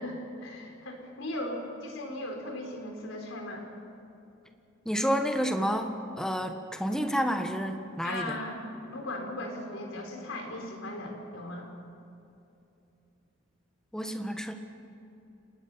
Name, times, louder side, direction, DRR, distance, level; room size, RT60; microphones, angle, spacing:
voice 1, 0.0-3.6 8.0-8.6 8.9-11.7, left 1 dB, 90° left, 2 dB, 4.5 m, -37 dB
voice 2, 4.8-5.9 6.2-8.4 13.9-14.5, equal, 5° left, 5 dB, 1.4 m, -29 dB
30.0 x 18.5 x 5.7 m, 2.8 s
head